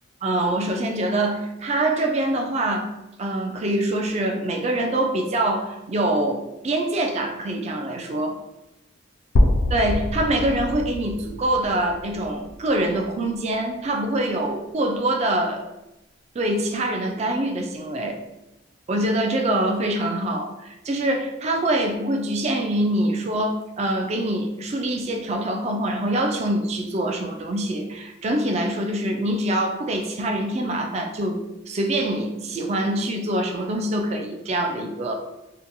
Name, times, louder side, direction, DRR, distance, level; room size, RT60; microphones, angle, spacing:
voice 1, 0.2-2.9 3.2-8.4 9.7-15.6 16.4-18.2 18.9-31.4 31.7-35.1, right 1 dB, 35° right, 3 dB, 0.3 m, -24 dB
sound 1, 9.4-13.3, left 1 dB, 50° left, 0.3 m, -25 dB
2.8 x 2.2 x 2.6 m, 0.96 s
head